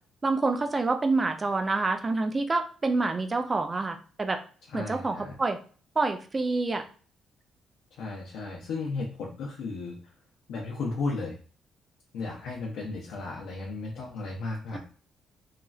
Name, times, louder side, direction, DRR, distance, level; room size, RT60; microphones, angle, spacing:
voice 1, 0.2-4.4 4.7-5.6 6.0-6.8, right 3 dB, 25° right, 7 dB, 0.4 m, -27 dB
voice 2, 4.7-5.4 8.0-10.0 10.5-11.4 12.1-14.8, left 3 dB, 85° left, -2 dB, 0.6 m, -34 dB
3.0 x 2.4 x 2.3 m, 0.40 s
cardioid pair, 90°, 0 cm